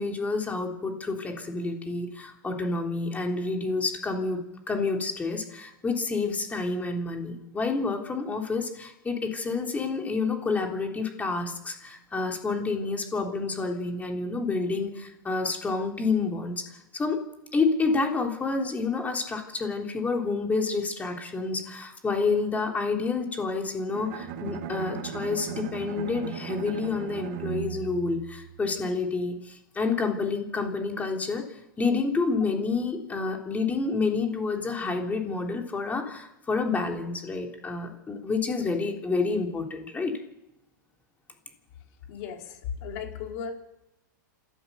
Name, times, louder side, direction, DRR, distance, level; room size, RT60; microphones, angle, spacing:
voice 1, 0.0-16.6 16.9-17.2 17.5-40.1, left 4 dB, 15° left, 2 dB, 3.5 m, -29 dB
Bowed string instrument, 23.9-29.0, right 8 dB, 55° right, 2.7 m, -37 dB
voice 2, 42.1-43.5, left 7 dB, 55° left, 2 dB, 4.6 m, -36 dB
27.0 x 13.5 x 7.0 m, 0.89 s
hypercardioid pair, 130°, 11 cm